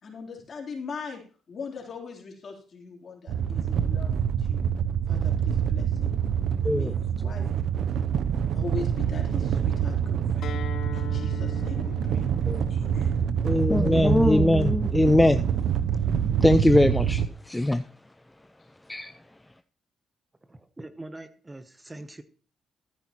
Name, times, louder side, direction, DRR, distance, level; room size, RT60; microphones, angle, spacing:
voice 1, 0.0-1.2 1.5-4.1 4.4-4.6 5.1-6.1 6.6-7.5 8.5-10.5 10.9-12.3 12.7-13.2, left 5 dB, 50° left, 3.4 m, -40 dB
sound 1, 3.3-17.3, right 8 dB, 70° right, 0.6 m, -26 dB
Acoustic guitar, 10.4-15.6, left 8 dB, 70° left, 0.9 m, -42 dB
voice 2, 13.4-15.4 16.4-17.8 18.9-19.1, left 1 dB, 10° left, 0.4 m, -21 dB
voice 3, 20.5-22.2, right 2 dB, 15° right, 0.9 m, -43 dB
13.5 x 10.5 x 3.0 m
cardioid pair, 90°, 0 cm